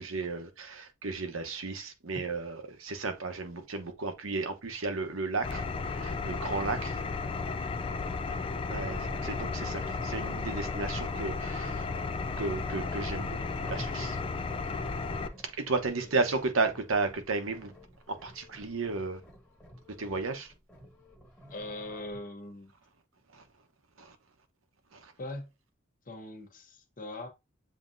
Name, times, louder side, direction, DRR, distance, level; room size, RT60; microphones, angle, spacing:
voice 1, 0.0-7.0 8.7-11.9 12.4-14.2 15.5-17.7 18.1-19.2 20.0-20.5 23.3-23.4 24.0-24.1 24.9-25.1, right 3 dB, 75° right, 0.9 m, -33 dB
Engine, 5.4-15.3, left 4 dB, 25° left, 0.4 m, -34 dB
sound 1, 8.7-22.2, equal, 5° left, 1.7 m, -50 dB
voice 2, 21.5-22.7 25.2-25.5 26.1-27.3, left 1 dB, 40° left, 1.1 m, -41 dB
7.4 x 2.8 x 2.5 m
head